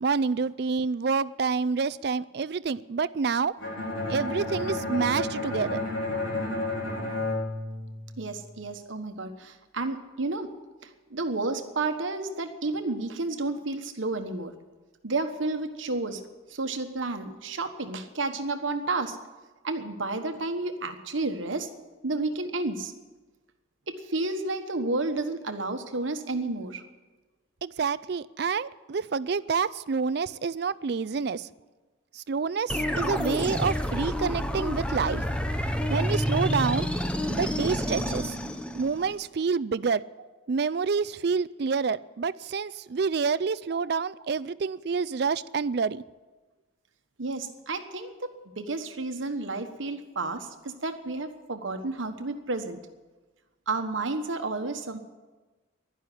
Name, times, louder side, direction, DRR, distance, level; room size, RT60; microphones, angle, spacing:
voice 1, 0.0-3.5 4.1-5.8 27.6-31.4 32.3-35.2 35.9-36.9 37.3-38.3 38.7-40.0 40.5-46.0, right 5 dB, 55° right, 17 dB, 0.4 m, -28 dB
Bowed string instrument, 3.6-8.5, left 2 dB, 75° left, 4.5 m, -31 dB
voice 2, 8.2-10.5 10.8-14.5 15.0-16.2 16.5-19.2 19.6-21.7 22.0-22.9 23.9-26.8 40.2-40.3 43.7-43.8 47.2-52.8 53.7-55.0, right 3 dB, 75° right, 8 dB, 1.3 m, -31 dB
sound 1, 32.7-39.2, equal, 5° left, 0.8 m, -29 dB
11.5 x 11.0 x 10.0 m, 1.2 s
head